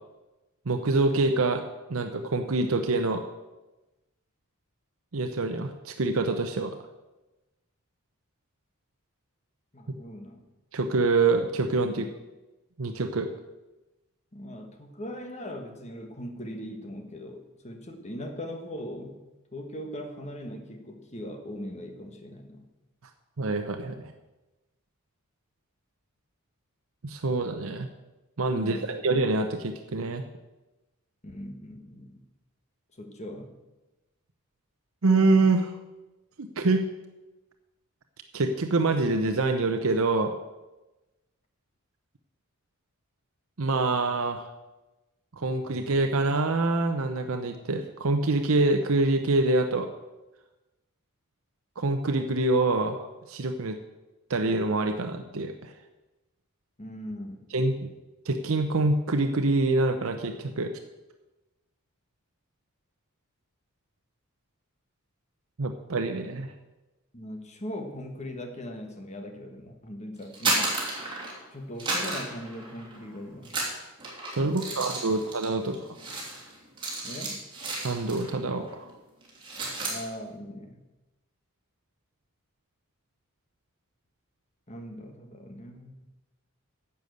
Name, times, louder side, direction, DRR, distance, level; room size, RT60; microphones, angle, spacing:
voice 1, 0.7-1.6 1.9-3.2 5.1-6.7 10.7-12.0 12.8-13.3 23.4-24.1 27.0-27.9 28.4-30.2 35.0-35.8 36.4-36.8 38.3-40.3 43.6-44.5 45.4-49.9 51.8-53.8 54.3-55.7 57.5-57.7 58.2-60.7 65.6-66.5 74.4-75.8 77.8-78.9, right 3 dB, 70° right, 6 dB, 0.7 m, -25 dB
voice 2, 9.7-10.4 11.8-12.1 14.3-19.2 19.5-22.7 28.5-28.9 31.2-32.2 32.9-33.5 56.8-57.4 67.1-70.8 71.5-73.6 74.4-75.2 77.0-77.4 79.8-80.8 84.7-85.9, equal, 30° left, 5 dB, 1.4 m, -40 dB
sound 1, 70.2-71.5 71.8-73.0 73.4-78.4 78.6-78.9 79.2-80.0, right 2 dB, 20° right, 3.0 m, -32 dB
10.5 x 7.0 x 7.9 m, 1.1 s
head